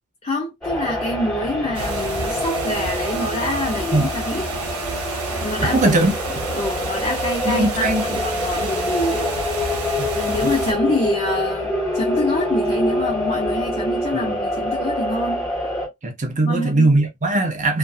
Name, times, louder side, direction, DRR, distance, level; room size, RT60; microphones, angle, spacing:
voice 1, 0.2-4.6 5.4-6.0 6.2-9.3 10.3-15.5 16.4-16.9, left 1 dB, 25° left, 0.5 m, -26 dB
sound 1, 0.6-15.9, equal, 5° left, 1.4 m, -25 dB
sound 2, 1.7-10.7, right 3 dB, 85° right, 1.0 m, -30 dB
voice 2, 5.7-6.1 7.4-8.0 10.0-10.5 14.1-14.4 16.0-17.8, right 2 dB, 35° right, 0.5 m, -20 dB
2.6 x 2.4 x 2.3 m
head